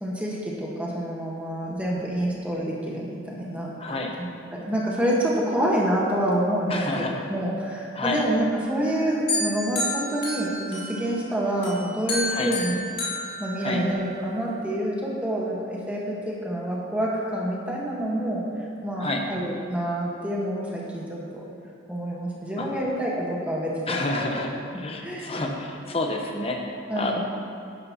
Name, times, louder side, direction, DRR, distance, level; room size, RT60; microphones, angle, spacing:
voice 1, 0.0-3.7 4.5-12.8 13.4-21.4 21.9-24.3 25.0-25.3 26.9-27.2, right 1 dB, 5° right, -4 dB, 1.2 m, -27 dB
voice 2, 3.8-4.1 6.7-7.1 7.9-8.2 12.3-12.5 13.6-13.8 19.0-19.2 22.6-22.7 23.9-24.5 24.8-27.2, left 2 dB, 30° left, 2 dB, 0.8 m, -29 dB
sound 1, 9.3-11.2 11.6-14.2, left 2 dB, 55° left, 2.2 m, -30 dB
10.5 x 10.0 x 2.8 m, 2.5 s
head